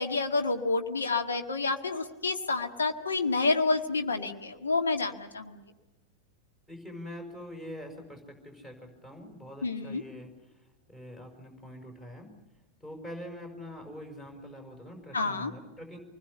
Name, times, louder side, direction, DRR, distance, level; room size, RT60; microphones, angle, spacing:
voice 1, 0.0-5.6 9.6-10.0 15.1-15.5, left 3 dB, 70° left, 5 dB, 1.7 m, -29 dB
voice 2, 6.7-10.3 10.9-12.3 12.8-16.0, equal, 20° left, 4 dB, 5.6 m, -44 dB
26.5 x 20.5 x 6.9 m, 1.1 s
figure-of-eight pair, 90°, 0 cm